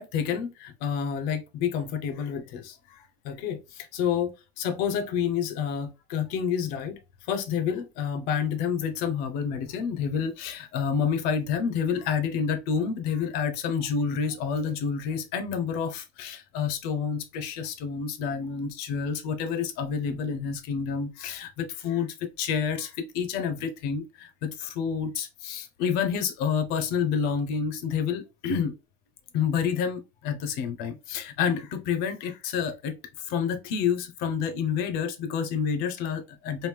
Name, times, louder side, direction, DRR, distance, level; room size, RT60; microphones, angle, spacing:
voice 1, 0.0-7.0 7.3-28.8 29.3-33.0 33.2-36.7, left 7 dB, 55° left, 0.8 m, -29 dB
3.2 x 2.5 x 3.3 m
supercardioid pair, 145°, 19 cm